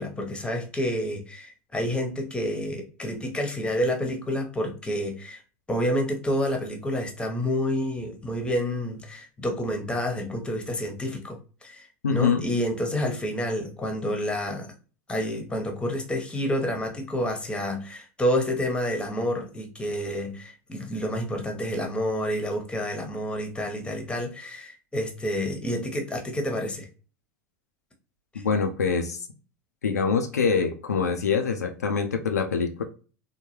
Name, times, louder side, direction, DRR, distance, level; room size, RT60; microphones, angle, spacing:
voice 1, 0.0-5.4 5.7-14.7 15.1-26.9 28.3-28.4, equal, 10° left, 3 dB, 0.8 m, -29 dB
voice 2, 12.0-12.4 28.3-29.3 29.8-32.8, left 5 dB, 80° left, 5 dB, 0.4 m, -25 dB
3.7 x 2.2 x 3.0 m, 0.37 s
figure-of-eight pair, 80°, 9 cm